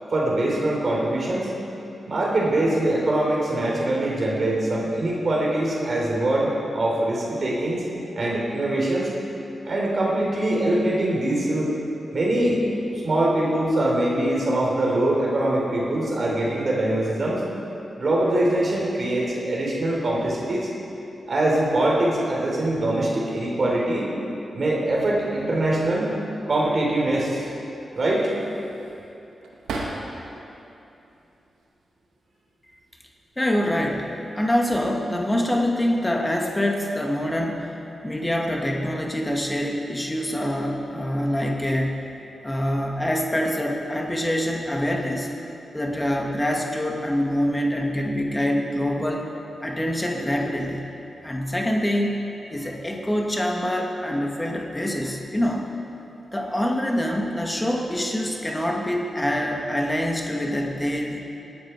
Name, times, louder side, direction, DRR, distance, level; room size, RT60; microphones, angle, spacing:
voice 1, 0.1-1.5 2.1-7.8 8.2-9.1 9.6-11.7 12.1-12.6 12.9-17.4 18.0-20.7 21.3-24.1 24.5-26.2 26.5-27.5 27.9-28.3, right 1 dB, 60° right, -3 dB, 4.1 m, -23 dB
sound 1, 27.9-30.4 30.9-31.7 32.6-33.0 33.3-34.1, right 2 dB, 90° right, 1.6 m, -37 dB
voice 2, 33.4-37.7 38.0-42.1 42.4-45.3 45.7-49.3 49.6-50.9 51.2-52.2 52.5-55.7 56.3-61.2, equal, 20° left, 0 dB, 2.1 m, -25 dB
18.5 x 12.0 x 4.8 m, 2.8 s
supercardioid pair, 40°, 0 cm